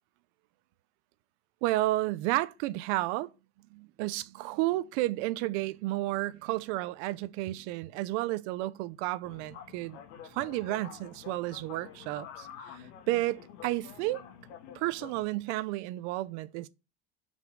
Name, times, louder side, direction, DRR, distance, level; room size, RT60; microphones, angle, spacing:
voice 1, 1.6-3.3 3.7-10.0 10.3-14.2 14.7-16.7, right 17 dB, 75° right, 0.7 m, -32 dB
sound 1, 9.2-15.2, left 8 dB, 80° left, 1.7 m, -48 dB
6.3 x 5.3 x 5.3 m
cardioid pair, 145°, 34 cm